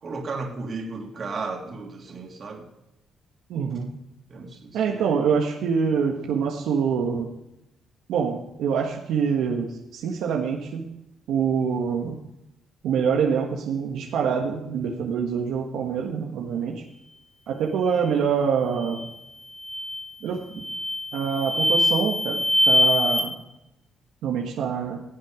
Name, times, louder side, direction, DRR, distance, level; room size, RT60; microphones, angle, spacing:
voice 1, 0.0-2.7 4.3-5.1 17.5-17.6, right 3 dB, 45° right, 1 dB, 2.9 m, -34 dB
voice 2, 3.5-3.9 4.7-7.3 8.1-10.9 11.3-12.2 12.8-16.8 17.5-19.1 20.2-20.7 21.1-23.4 24.2-25.0, right 6 dB, 80° right, 0 dB, 1.5 m, -25 dB
sound 1, 18.8-19.1 19.6-20.1 20.6-23.2, left 1 dB, 20° left, 2.4 m, -23 dB
16.0 x 7.7 x 5.0 m, 0.86 s
cardioid pair, 90°, 0 cm